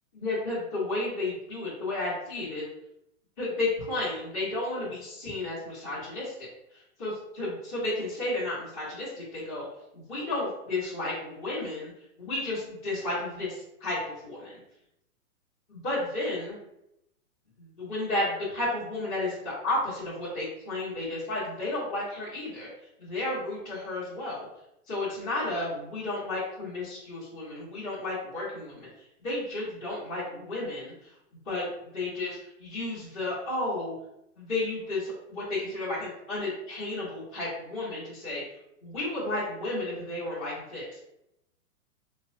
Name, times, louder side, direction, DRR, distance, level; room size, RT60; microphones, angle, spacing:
voice 1, 0.1-2.7 3.4-9.6 9.9-11.9 12.2-14.6 15.7-16.6 17.6-24.5 24.9-31.2 31.4-33.9 34.4-38.4 38.8-41.0, left 2 dB, 35° left, -10 dB, 1.2 m, -32 dB
4.6 x 2.2 x 2.6 m, 0.83 s
hypercardioid pair, 170°, 43 cm